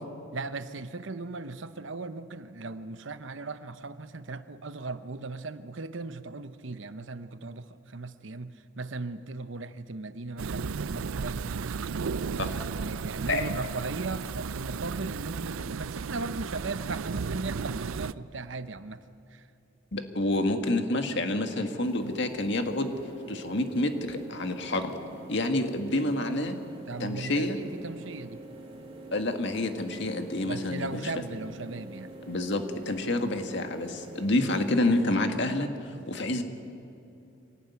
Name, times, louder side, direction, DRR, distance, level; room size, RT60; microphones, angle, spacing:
voice 1, 0.3-11.5 12.7-19.0 19.3-19.4 26.9-28.4 30.4-32.1 34.4-34.6, right 3 dB, 65° right, 12 dB, 0.9 m, -38 dB
sound 1, 10.4-18.1, right 5 dB, 80° right, 0.5 m, -34 dB
voice 2, 19.9-22.9 23.3-25.0 25.3-26.6 27.0-27.6 29.1-31.1 32.3-36.4, left 1 dB, 55° left, 6 dB, 1.9 m, -28 dB
sound 2, 21.8-35.0, right 2 dB, 30° right, 3.5 m, -46 dB
25.5 x 18.0 x 9.5 m, 2.8 s
head